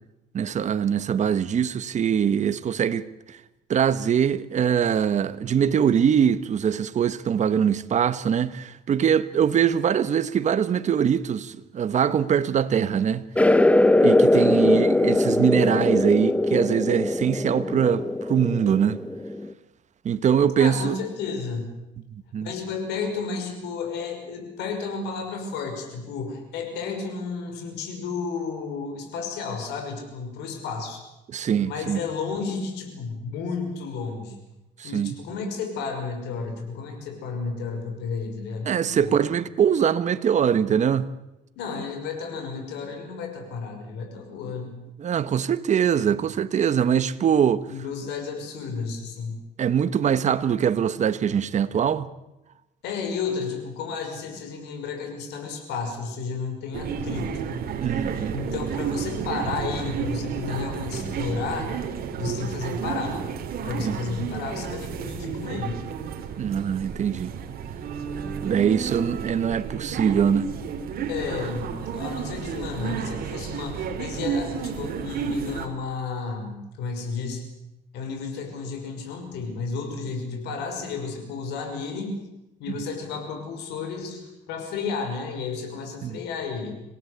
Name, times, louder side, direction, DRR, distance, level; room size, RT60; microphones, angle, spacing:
voice 1, 0.3-3.4 3.7-13.2 14.0-19.0 20.0-21.0 22.3-22.5 31.3-32.0 34.8-35.1 38.6-41.1 45.0-47.7 49.6-52.1 57.8-58.4 62.3-62.4 63.8-64.0 66.4-67.3 68.4-70.5 82.7-82.8 86.0-86.2, right 8 dB, 45° right, 1.4 m, -23 dB
sound 1, 13.3-19.5, left 1 dB, 10° left, 1.0 m, -21 dB
voice 2, 20.6-21.7 22.4-31.0 31.6-34.4 34.8-39.1 41.6-44.8 47.7-49.4 52.8-57.5 58.3-61.7 62.2-63.2 63.6-65.8 71.1-77.4 77.9-82.2 82.6-86.8, left 5 dB, 85° left, 5.9 m, -32 dB
sound 2, 56.7-75.7, right 6 dB, 60° right, 3.2 m, -31 dB
26.0 x 18.0 x 8.3 m
cardioid pair, 110°, 17 cm